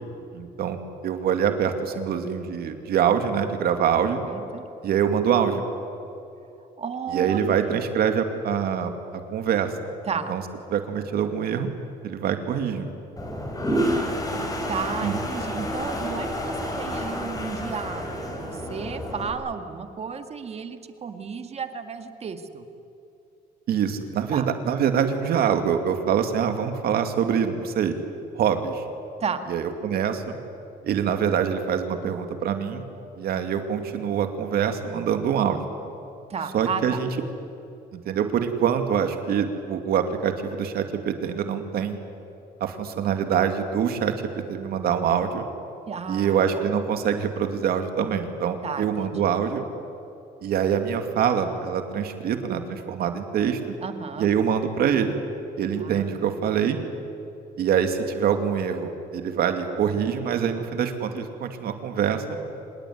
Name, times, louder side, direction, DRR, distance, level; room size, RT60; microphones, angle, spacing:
voice 1, 0.3-4.2 4.8-5.6 7.1-8.9 9.3-9.7 10.3-10.4 10.7-11.7 12.0-12.9 15.0-15.2 23.7-28.0 28.4-28.8 29.5-30.4 30.8-32.8 33.2-35.6 36.5-37.1 37.9-42.0 42.6-45.4 46.1-49.6 50.4-53.6 54.2-55.2 55.6-56.8 57.6-62.4, right 8 dB, 65° right, 6 dB, 2.6 m, -25 dB
voice 2, 4.3-4.7 6.8-7.8 10.0-10.3 14.7-22.7 24.3-24.5 29.2-29.5 36.3-37.0 45.9-46.7 48.6-49.2 53.0-53.1 53.8-54.3 55.8-56.4, right 6 dB, 40° right, 8 dB, 2.0 m, -33 dB
Toilet flush, 13.2-19.3, equal, 20° left, 5.0 m, -29 dB
26.0 x 20.0 x 9.6 m, 2.7 s
cardioid pair, 110°, 17 cm